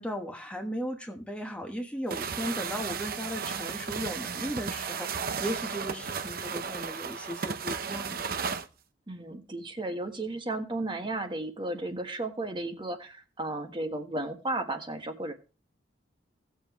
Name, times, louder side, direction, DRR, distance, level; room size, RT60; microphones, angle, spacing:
voice 1, 0.0-8.2, equal, 5° left, 3 dB, 1.2 m, -36 dB
sound 1, 2.1-8.7, right 6 dB, 50° right, 0.8 m, -34 dB
voice 2, 9.1-15.3, right 2 dB, 25° right, 5 dB, 1.4 m, -34 dB
17.5 x 7.1 x 3.1 m, 0.32 s
head